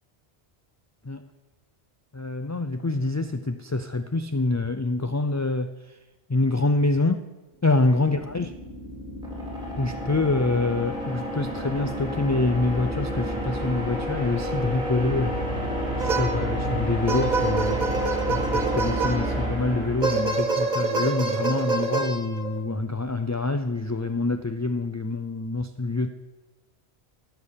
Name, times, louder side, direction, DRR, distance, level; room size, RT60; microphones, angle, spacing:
voice 1, 2.1-5.7 6.3-7.3 7.6-8.5 9.8-15.4 16.0-17.8 18.3-26.1, left 2 dB, 25° left, 8 dB, 0.3 m, -26 dB
sound 1, 8.0-20.8, equal, 5° right, 4.1 m, -30 dB
sound 2, 16.0-16.6 17.1-19.5 20.0-22.6, right 3 dB, 45° right, 1.4 m, -26 dB
15.0 x 8.3 x 7.0 m, 1.1 s
omnidirectional pair, 1.1 m